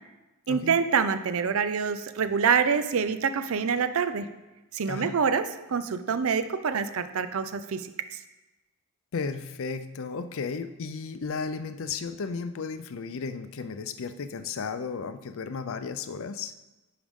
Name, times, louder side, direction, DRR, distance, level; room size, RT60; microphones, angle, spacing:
voice 1, 0.5-4.3 4.7-7.9, right 6 dB, 65° right, 11 dB, 0.5 m, -26 dB
voice 2, 9.1-16.5, left 5 dB, 60° left, 10 dB, 0.5 m, -34 dB
10.0 x 4.8 x 3.6 m, 1.1 s
head